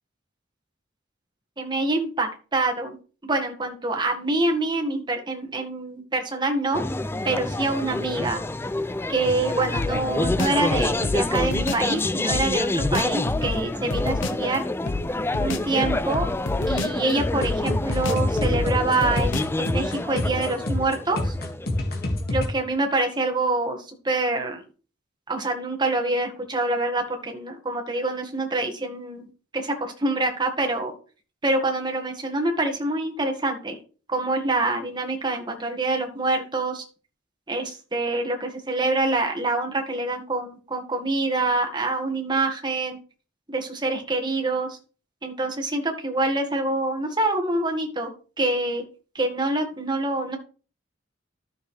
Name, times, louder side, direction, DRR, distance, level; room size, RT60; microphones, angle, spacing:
voice 1, 1.6-3.0 3.2-6.8 7.2-8.4 9.1-14.6 15.4-16.3 16.7-21.3 22.3-24.6 25.3-29.3 29.5-30.9 31.4-33.8 34.1-36.8 37.5-43.0 43.5-44.8 45.2-48.8 49.2-50.4, right 2 dB, 25° right, 2 dB, 1.8 m, -26 dB
sound 1, 6.7-22.2, left 2 dB, 10° left, 0.4 m, -28 dB
sound 2, 9.8-11.9 12.3-14.4 14.9-17.1 17.4-19.7, left 3 dB, 75° left, 0.9 m, -29 dB
sound 3, 17.2-22.5, left 1 dB, 55° left, 2.2 m, -27 dB
12.5 x 6.7 x 3.4 m, 0.37 s
head